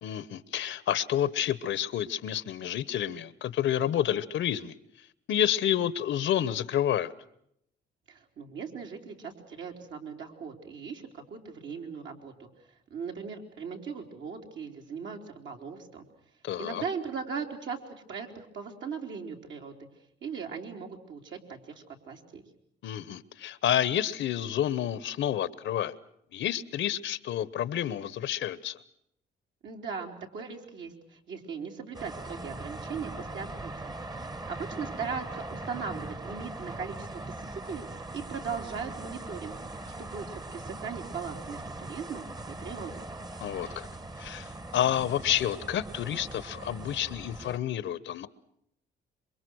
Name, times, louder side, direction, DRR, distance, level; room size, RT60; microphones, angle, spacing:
voice 1, 0.0-4.7 5.3-7.1 16.4-16.8 22.8-26.0 26.3-28.8 43.4-43.9 44.2-48.3, left 10 dB, 75° left, 18 dB, 1.1 m, -29 dB
voice 2, 8.1-12.5 12.9-16.0 16.6-17.8 18.1-19.7 20.2-22.4 29.6-33.9 34.2-37.2 37.5-43.1, right 6 dB, 70° right, 1 dB, 3.7 m, -39 dB
sound 1, 31.9-47.6, right 2 dB, 20° right, 1.2 m, -41 dB
27.0 x 23.5 x 6.4 m, 0.73 s
cardioid pair, 90°, 20 cm